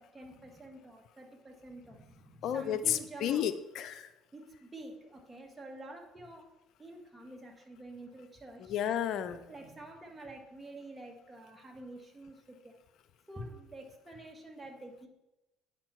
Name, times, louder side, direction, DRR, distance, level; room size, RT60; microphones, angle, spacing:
voice 1, 0.0-3.5 4.3-6.5 6.8-8.7 9.3-12.8 13.3-15.1, right 1 dB, 15° right, 2 dB, 1.9 m, -48 dB
voice 2, 2.4-4.1 8.7-9.4, left 10 dB, 65° left, 13 dB, 0.5 m, -32 dB
9.5 x 5.9 x 4.4 m, 0.98 s
hypercardioid pair, 70°, 0 cm